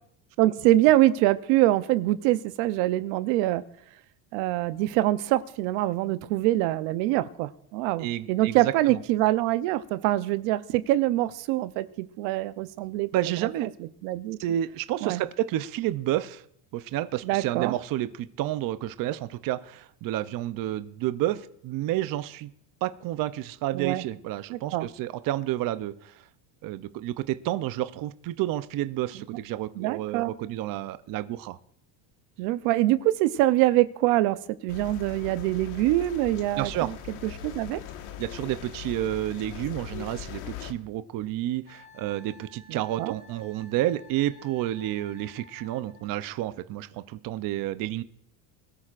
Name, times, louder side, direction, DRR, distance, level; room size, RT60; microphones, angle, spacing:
voice 1, 0.4-3.6 4.3-13.1 13.8-14.4 15.0-15.2 17.2-17.7 23.7-24.0 24.5-24.9 29.8-30.3 32.4-34.4 34.6-37.8 42.7-43.1, right 16 dB, 75° right, 13 dB, 0.8 m, -24 dB
voice 2, 8.0-9.0 13.1-13.7 14.4-16.4 16.7-22.5 22.8-26.2 26.6-31.6 36.6-36.9 38.2-48.0, right 13 dB, 45° right, 13 dB, 0.6 m, -30 dB
sound 1, 34.7-40.7, left 9 dB, 70° left, 1.5 m, -40 dB
Wind instrument woodwind instrument, 41.7-46.1, left 3 dB, 20° left, 2.5 m, -53 dB
21.5 x 13.5 x 2.5 m, 0.67 s
cardioid pair, 135°, 50 cm